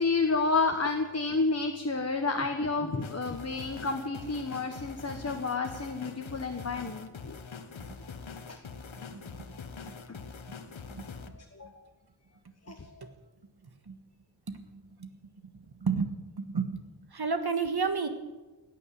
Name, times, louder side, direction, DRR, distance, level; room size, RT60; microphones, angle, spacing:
voice 1, 0.0-7.4 8.5-8.6 10.1-10.2 11.3-11.7 12.7-13.1, left 3 dB, 30° left, 4 dB, 1.3 m, -30 dB
sound 1, 3.0-11.3, left 5 dB, 80° left, 1.3 m, -44 dB
voice 2, 9.1-9.5 10.1-10.2 10.9-11.0 13.0-13.1 13.9-14.0 14.5-15.1 15.5-16.8 17.1-18.1, right 5 dB, 55° right, 8 dB, 1.6 m, -32 dB
17.0 x 9.5 x 8.4 m, 1.1 s
wide cardioid pair, 85°, 47 cm